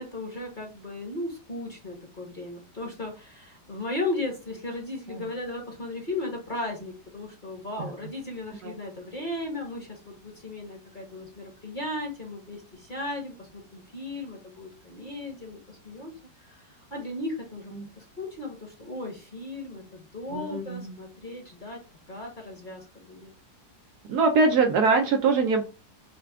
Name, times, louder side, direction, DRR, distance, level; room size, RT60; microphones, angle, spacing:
voice 1, 0.0-21.8 22.1-23.3, left 2 dB, 30° left, 0 dB, 1.2 m, -36 dB
voice 2, 20.3-20.8 24.1-25.6, right 4 dB, 70° right, 5 dB, 1.1 m, -22 dB
5.7 x 2.3 x 3.5 m, 0.31 s
omnidirectional pair, 2.0 m